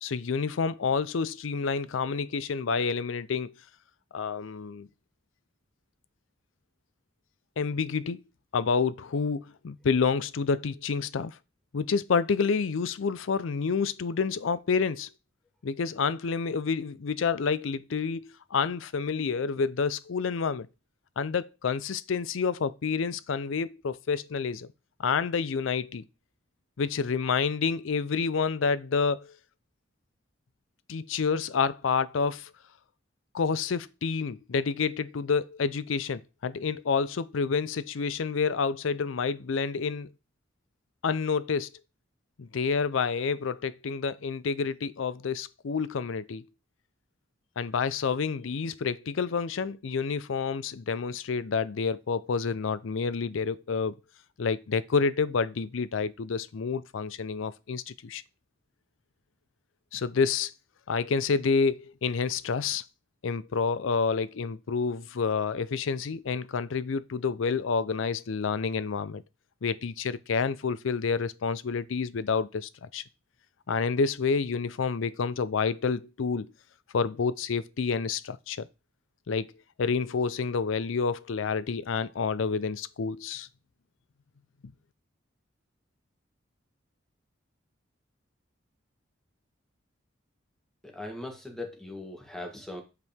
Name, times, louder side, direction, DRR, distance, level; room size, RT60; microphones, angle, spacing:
voice 1, 0.0-3.5 4.1-4.9 7.6-8.2 8.5-11.4 11.7-15.1 15.6-20.7 21.2-24.7 25.0-26.0 26.8-29.4 30.9-32.5 33.3-40.1 41.0-41.7 42.4-46.4 47.6-54.0 54.4-58.2 59.9-60.5 60.9-62.8 63.2-69.2 69.6-73.0 73.7-76.5 76.9-78.7 79.3-79.5 79.8-83.5 84.6-84.7, left 5 dB, 80° left, 0.5 m, -28 dB
voice 2, 90.8-92.8, left 2 dB, 5° left, 1.5 m, -39 dB
8.1 x 4.7 x 3.5 m
head